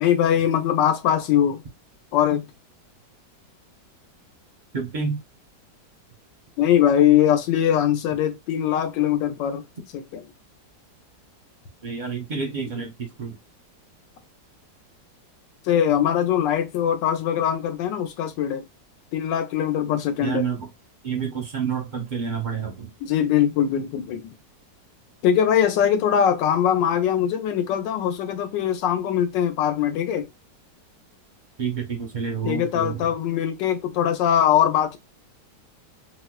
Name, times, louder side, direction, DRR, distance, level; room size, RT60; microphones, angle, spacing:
voice 1, 0.0-1.6 2.1-2.5 6.6-9.6 9.9-10.2 15.7-18.6 19.1-20.5 23.0-24.3 25.2-30.3 32.4-35.0, left 9 dB, 90° left, 1.3 m, -21 dB
voice 2, 4.7-5.2 11.8-13.4 20.2-20.7 21.0-22.9 31.6-33.1, right 6 dB, 50° right, 0.5 m, -29 dB
4.2 x 2.1 x 2.2 m
omnidirectional pair, 1.9 m